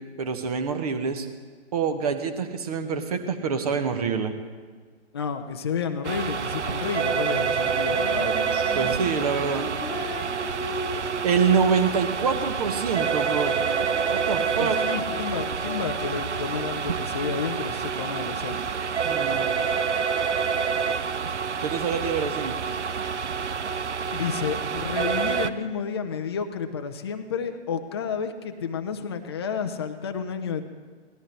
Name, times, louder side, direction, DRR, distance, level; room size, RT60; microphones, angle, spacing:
voice 1, 0.2-1.3 1.7-4.3 8.7-9.7 10.9-13.6 14.1-14.8 19.0-19.5 21.6-22.6, right 6 dB, 30° right, 8 dB, 0.9 m, -26 dB
voice 2, 5.1-8.6 14.6-18.6 24.1-30.7, left 6 dB, 25° left, 7 dB, 0.5 m, -31 dB
sound 1, 6.0-25.5, right 6 dB, 75° right, 0.6 m, -27 dB
Female singing, 7.9-18.4, left 2 dB, 5° left, 1.4 m, -38 dB
17.5 x 13.0 x 3.3 m, 1.5 s
figure-of-eight pair, 135°, 36 cm